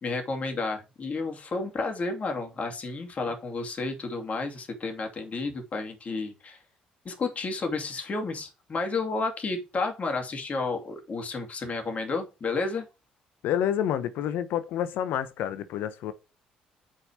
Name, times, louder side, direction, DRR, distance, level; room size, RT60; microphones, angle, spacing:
voice 1, 0.0-6.6 7.0-12.8, left 3 dB, 40° left, 2.8 m, -31 dB
voice 2, 13.4-16.1, left 10 dB, 65° left, 1.0 m, -28 dB
8.0 x 5.7 x 5.0 m
hypercardioid pair, 55°, 4 cm